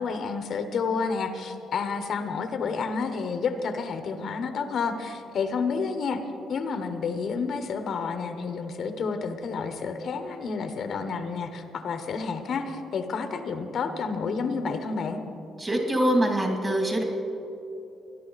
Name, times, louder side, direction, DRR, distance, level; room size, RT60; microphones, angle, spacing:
voice 1, 0.0-6.2 6.5-15.2, left 5 dB, 65° left, 8 dB, 0.9 m, -30 dB
voice 2, 15.6-17.0, right 1 dB, 25° right, 2 dB, 2.3 m, -24 dB
19.0 x 11.0 x 4.0 m, 2.9 s
cardioid pair, 90°, 0 cm